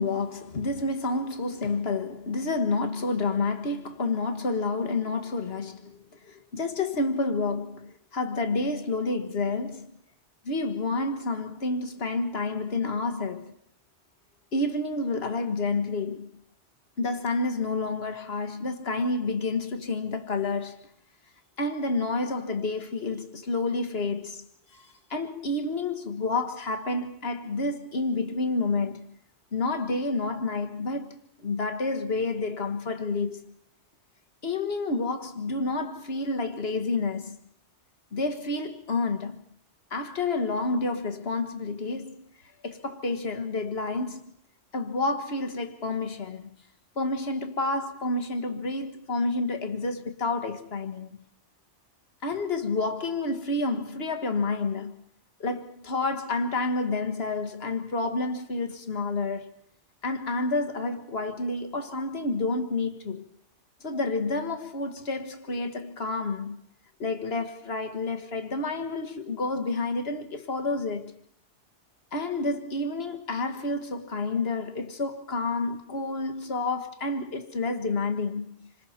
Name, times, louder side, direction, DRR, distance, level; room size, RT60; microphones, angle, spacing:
voice 1, 0.0-10.0 10.5-13.5 14.5-16.4 17.0-20.9 21.6-24.5 24.7-29.1 29.5-33.5 34.4-37.4 38.1-39.4 39.9-42.3 42.6-44.3 44.7-46.5 47.0-51.1 52.2-55.0 55.4-59.5 60.0-63.2 63.8-66.6 67.0-71.2 72.1-78.7, left 3 dB, 60° left, 1.8 m, -29 dB
27.5 x 26.0 x 4.3 m
omnidirectional pair, 1.2 m